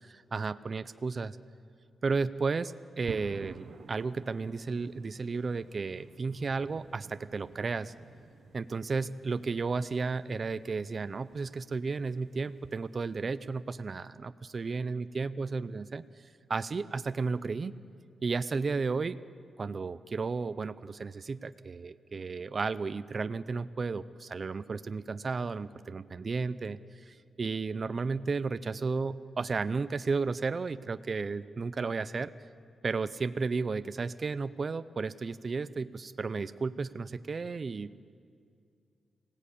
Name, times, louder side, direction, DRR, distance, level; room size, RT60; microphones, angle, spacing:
voice 1, 0.3-1.4 2.0-7.9 8.5-16.0 16.5-17.7 18.2-19.2 19.6-32.3 32.8-38.0, right 4 dB, 40° right, 12 dB, 0.6 m, -33 dB
sound 1, 3.1-13.2, right 5 dB, 65° right, 1.0 m, -51 dB
25.5 x 17.5 x 8.5 m, 2.2 s
wide cardioid pair, 115°, 0 cm